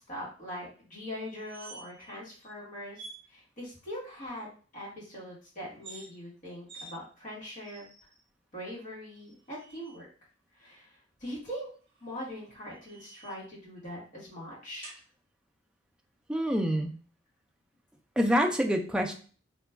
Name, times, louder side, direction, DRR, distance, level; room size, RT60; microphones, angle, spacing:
voice 1, 0.1-3.0 3.3-7.8 8.5-10.1 10.6-10.9 11.2-11.7 12.0-14.9, equal, 45° left, -5 dB, 1.4 m, -42 dB
sound 1, 1.2-2.1 2.4-2.5 2.9-3.2 5.7-6.1 6.7-6.9 7.6-8.2 9.2-10.0 11.9-13.5 14.8-15.0, right 3 dB, 30° right, 1.0 m, -50 dB
voice 2, 16.3-16.9 18.2-19.1, equal, 5° right, 3 dB, 0.4 m, -26 dB
3.0 x 2.3 x 3.4 m, 0.40 s
head